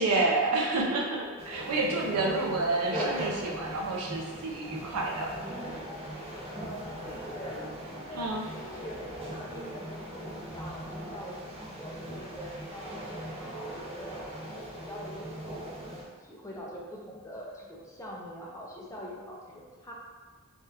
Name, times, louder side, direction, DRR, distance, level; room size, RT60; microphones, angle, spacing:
voice 1, 0.0-5.3 8.1-8.4, right 2 dB, 80° right, -2 dB, 0.6 m, -29 dB
sound 1, 1.4-16.0, equal, 25° right, 0.7 m, -39 dB
voice 2, 1.6-2.4 6.5-13.1 13.4-19.9, equal, 15° left, -3 dB, 0.5 m, -44 dB
3.4 x 2.3 x 2.8 m, 1.5 s
head